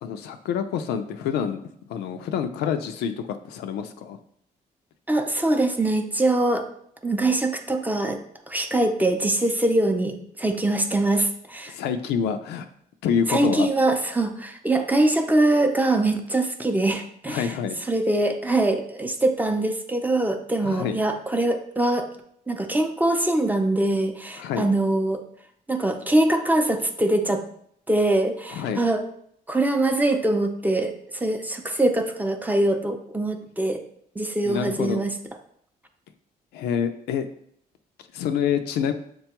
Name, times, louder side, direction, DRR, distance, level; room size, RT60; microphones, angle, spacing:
voice 1, 0.0-1.6 1.9-4.2 11.7-12.7 13.0-13.7 17.3-17.8 20.6-21.0 24.4-24.7 28.5-28.8 34.5-35.0 36.5-37.3 38.1-38.9, left 7 dB, 90° left, 8 dB, 0.4 m, -27 dB
voice 2, 5.1-6.7 7.0-8.2 8.5-11.8 13.3-17.5 17.9-22.1 22.5-25.2 25.7-27.4 27.9-29.0 29.5-33.8 34.2-35.1, right 2 dB, 10° right, 5 dB, 0.5 m, -23 dB
6.6 x 2.2 x 2.9 m, 0.68 s
cardioid pair, 85°, 16 cm